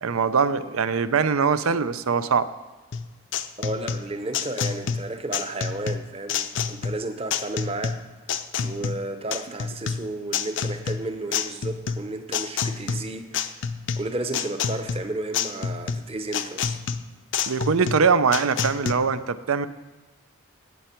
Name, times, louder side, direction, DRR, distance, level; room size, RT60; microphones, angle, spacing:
voice 1, 0.0-2.5 17.5-19.7, right 5 dB, 85° right, 13 dB, 0.6 m, -22 dB
sound 1, 2.9-18.9, left 6 dB, 60° left, 0.6 m, -29 dB
voice 2, 3.6-8.0 8.6-13.6 14.0-16.8, right 2 dB, 30° right, 7 dB, 0.8 m, -33 dB
17.0 x 6.8 x 4.5 m, 1.3 s
head